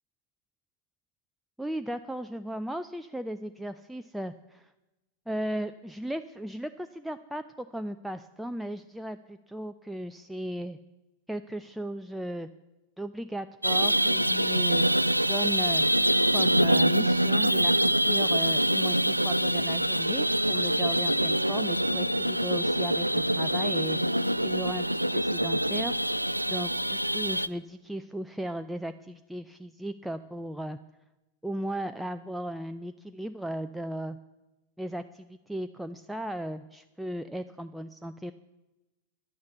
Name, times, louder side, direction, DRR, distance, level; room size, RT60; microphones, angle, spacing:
voice 1, 1.6-4.7 5.3-10.8 11.3-12.5 13.0-14.9 15.3-15.8 16.3-24.0 24.4-24.9 25.1-25.9 26.5-30.8 31.4-34.2 34.8-38.3, right 1 dB, 5° right, 8 dB, 0.4 m, -36 dB
sound 1, 13.6-27.5, right 1 dB, 90° right, 0.3 m, -25 dB
11.0 x 9.5 x 8.0 m, 1.0 s
figure-of-eight pair, 90°, 0 cm